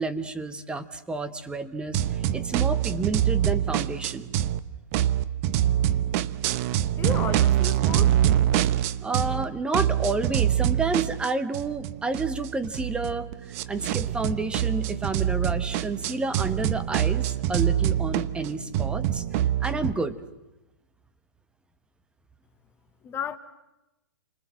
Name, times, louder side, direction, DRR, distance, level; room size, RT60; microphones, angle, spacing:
voice 1, 0.0-4.3 9.0-13.3 13.7-19.2 19.6-20.2, right 3 dB, 10° right, 1.3 m, -30 dB
sound 1, 1.9-4.6 4.9-9.4 9.7-19.9, right 11 dB, 40° right, 1.0 m, -25 dB
voice 2, 7.0-8.1 23.0-23.4, left 8 dB, 20° left, 1.2 m, -33 dB
29.0 x 24.5 x 7.7 m
hypercardioid pair, 130°, 11 cm